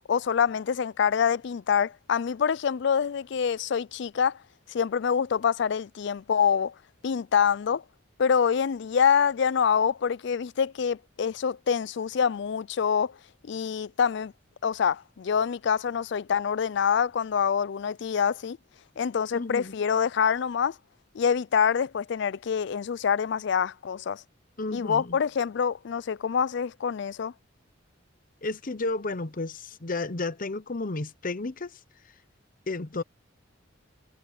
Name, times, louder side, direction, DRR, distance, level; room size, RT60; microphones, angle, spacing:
voice 1, 0.1-4.3 4.7-6.7 7.0-7.8 8.2-13.1 13.4-14.3 14.6-18.6 19.0-20.7 21.1-24.2 24.7-27.3, left 7 dB, 60° left, 0.4 m, -26 dB
voice 2, 19.3-19.7 24.6-25.2 28.4-31.8 32.7-33.0, left 3 dB, 45° left, 0.9 m, -32 dB
head